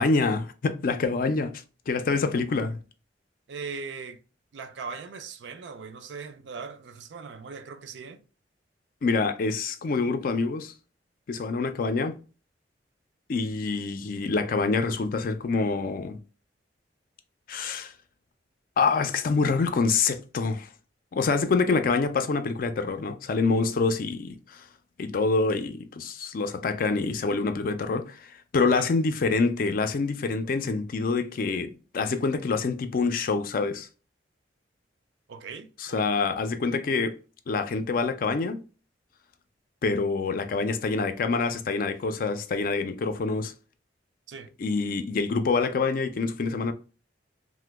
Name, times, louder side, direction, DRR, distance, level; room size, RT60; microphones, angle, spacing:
voice 1, 0.0-1.5 1.9-2.8 9.0-10.7 11.3-12.2 13.3-16.2 17.5-17.9 18.8-20.7 21.1-24.7 25.0-33.9 35.8-37.1 37.5-38.6 39.8-43.5 44.6-46.7, left 4 dB, 50° left, 0.4 m, -26 dB
voice 2, 3.5-4.2 4.5-8.2 28.6-28.9 35.3-36.1 44.3-44.5, right 5 dB, 80° right, 0.4 m, -39 dB
2.9 x 2.1 x 3.3 m
head